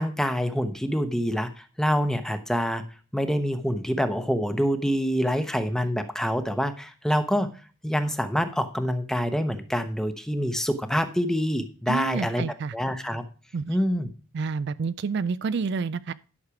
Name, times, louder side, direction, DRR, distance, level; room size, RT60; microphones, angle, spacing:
voice 1, 0.0-2.8 3.1-7.5 7.8-12.4 12.7-13.2 13.7-14.1, equal, 5° left, 0.9 m, -26 dB
voice 2, 11.9-12.7 13.5-13.8 14.3-16.1, right 5 dB, 55° right, 0.4 m, -29 dB
11.5 x 6.5 x 4.8 m
head